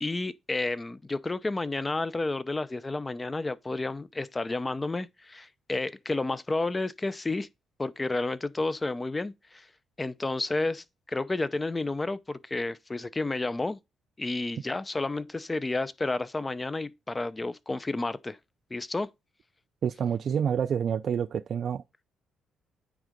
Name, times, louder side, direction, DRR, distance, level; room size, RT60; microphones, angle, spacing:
voice 1, 0.0-7.5 7.8-9.7 10.0-13.8 14.2-18.4 18.7-19.1, left 2 dB, 20° left, 0.5 m, -31 dB
voice 2, 19.8-22.0, right 8 dB, 55° right, 0.3 m, -28 dB
9.2 x 3.7 x 5.1 m
cardioid pair, 90°, 0 cm